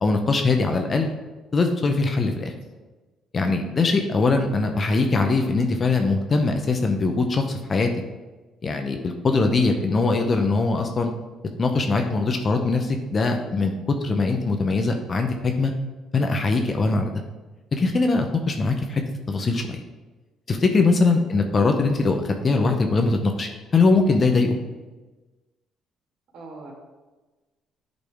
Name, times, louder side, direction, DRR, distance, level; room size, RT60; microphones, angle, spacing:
voice 1, 0.0-1.1 1.5-2.5 3.3-7.9 8.6-11.1 11.6-15.7 16.1-17.1 17.7-19.0 19.3-19.8 20.5-24.6, left 3 dB, 40° left, 4 dB, 0.7 m, -21 dB
voice 2, 26.3-26.7, right 1 dB, 70° right, -2 dB, 2.2 m, -41 dB
8.3 x 4.1 x 3.6 m, 1.2 s
supercardioid pair, 75°, 0 cm